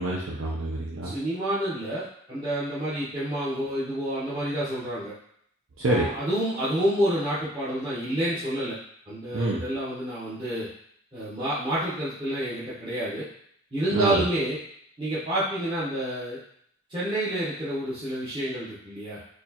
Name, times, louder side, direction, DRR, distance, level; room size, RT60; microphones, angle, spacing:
voice 1, 0.0-1.1 5.8-6.1 9.3-9.6 13.9-14.2, right 2 dB, 65° right, -5 dB, 0.6 m, -26 dB
voice 2, 1.0-5.1 5.8-8.8 9.1-10.7 11.1-13.2 13.7-14.6 15.0-16.4 16.9-19.2, right 1 dB, 25° right, -14 dB, 1.1 m, -29 dB
4.3 x 2.4 x 2.8 m, 0.66 s
head